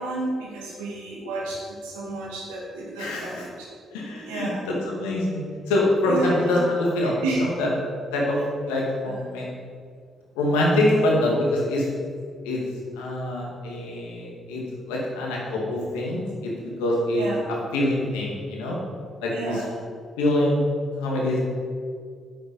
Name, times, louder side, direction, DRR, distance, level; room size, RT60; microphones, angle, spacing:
voice 1, 0.0-3.5 4.2-4.6 6.1-6.7 7.2-7.5 9.0-9.2 10.8-11.1 17.2-17.4 19.3-19.7, right 2 dB, 75° right, -3 dB, 2.2 m, -31 dB
voice 2, 3.0-3.5 3.9-8.4 8.7-9.5 10.4-11.9 12.4-12.6 13.0-16.5 16.8-17.3 17.7-18.8 19.2-19.6 20.2-20.7 21.0-21.4, left 1 dB, 75° left, -2 dB, 2.1 m, -25 dB
8.7 x 7.9 x 5.3 m, 2.1 s
figure-of-eight pair, 40°, 0 cm